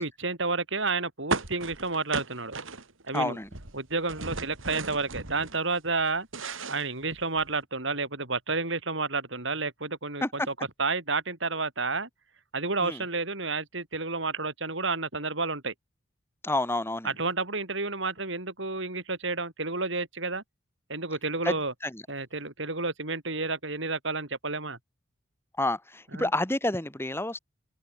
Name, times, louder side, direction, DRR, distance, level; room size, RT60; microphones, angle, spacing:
voice 1, 0.0-2.5 3.0-3.4 3.7-6.3 6.7-12.1 12.5-15.7 17.0-20.4 20.9-21.7 22.1-24.8 26.1-26.3, right 3 dB, 65° right, 5.8 m, -30 dB
sound 1, 1.3-3.2 3.4-5.6 6.0-7.6, right 3 dB, 80° right, 3.5 m, -35 dB
voice 2, 3.1-3.5 10.2-10.3 12.8-13.0 16.4-17.1 21.4-21.5 21.9-22.0 25.6-27.4, left 2 dB, 10° left, 2.6 m, -29 dB
open air
head